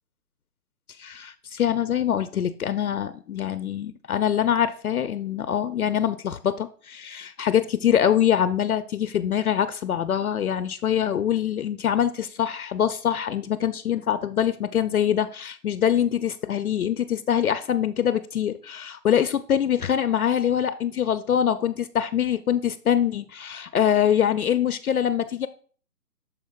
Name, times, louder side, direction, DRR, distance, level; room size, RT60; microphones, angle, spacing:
voice 1, 1.0-25.5, left 9 dB, 65° left, 0.5 m, -24 dB
12.5 x 4.4 x 2.3 m
figure-of-eight pair, 150°, 48 cm